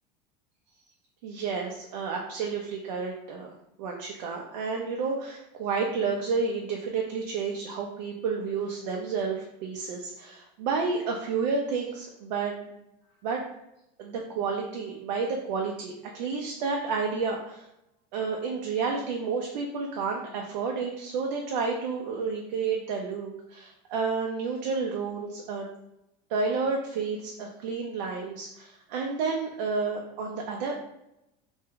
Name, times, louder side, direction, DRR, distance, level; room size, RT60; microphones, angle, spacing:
voice 1, 1.2-12.8 13.2-13.4 14.0-17.7 18.1-25.7 26.3-30.8, right 4 dB, 85° right, 0 dB, 0.5 m, -31 dB
2.6 x 2.2 x 3.6 m, 0.85 s
cardioid pair, 175°, 21 cm